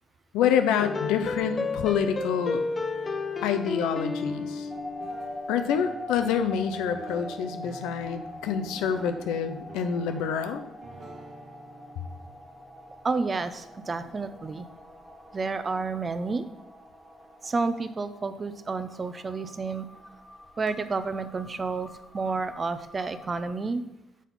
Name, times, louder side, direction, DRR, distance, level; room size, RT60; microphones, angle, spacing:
voice 1, 0.3-2.6 3.4-4.7 5.5-10.6, left 7 dB, 75° left, 8 dB, 0.5 m, -27 dB
sound 1, 0.8-5.4, left 4 dB, 35° left, 0.6 m, -32 dB
sound 2, 4.3-14.2, right 2 dB, 50° right, 1.1 m, -47 dB
sound 3, 4.7-23.6, left 1 dB, 10° right, 1.7 m, -44 dB
voice 2, 13.0-14.7 15.3-16.4 17.4-19.9 20.6-23.8, right 4 dB, 35° right, 11 dB, 0.6 m, -30 dB
7.2 x 4.1 x 4.1 m, 0.91 s
hypercardioid pair, 45°, 0 cm